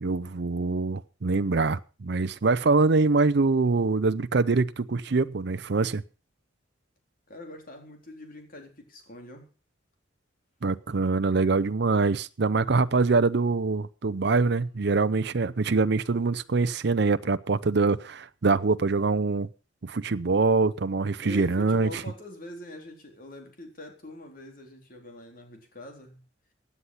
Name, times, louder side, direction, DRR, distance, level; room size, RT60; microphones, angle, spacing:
voice 1, 0.0-6.0 10.6-19.5 19.8-22.0, right 3 dB, 65° right, 0.6 m, -24 dB
voice 2, 7.3-9.5 16.9-17.1 21.2-26.2, left 1 dB, 50° left, 3.9 m, -44 dB
16.0 x 10.0 x 5.7 m
head